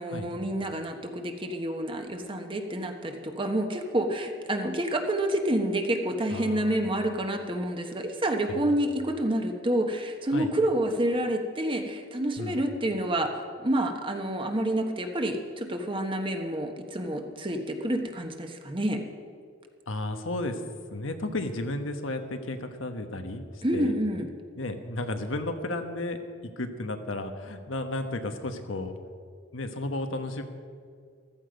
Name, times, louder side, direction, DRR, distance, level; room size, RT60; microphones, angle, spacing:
voice 1, 0.0-19.0 23.6-24.3, right 1 dB, 25° right, 5 dB, 1.2 m, -28 dB
voice 2, 6.3-6.8 8.5-8.6 10.3-10.5 12.4-12.6 19.9-20.6 20.9-24.0 24.6-26.2 26.6-29.0 29.5-30.4, left 2 dB, 85° left, 6 dB, 1.2 m, -33 dB
14.5 x 13.5 x 5.2 m, 2.1 s
head